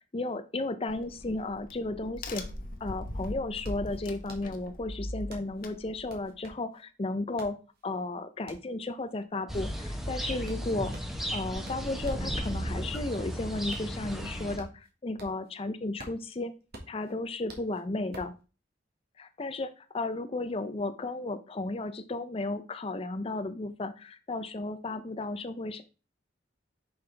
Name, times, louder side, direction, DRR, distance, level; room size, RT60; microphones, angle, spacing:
voice 1, 0.1-2.4 2.8-7.6 7.8-10.9 11.3-16.5 16.9-18.3 19.2-25.8, left 2 dB, 30° left, 10 dB, 0.5 m, -34 dB
Crack, 0.9-6.3, left 1 dB, 50° left, 0.9 m, -40 dB
sound 1, 3.6-12.3 12.7-15.6 15.8-18.4, right 1 dB, 60° right, 1.6 m, -50 dB
sound 2, 9.5-14.6, equal, ahead, 1.0 m, -35 dB
7.0 x 5.5 x 3.4 m, 0.34 s
head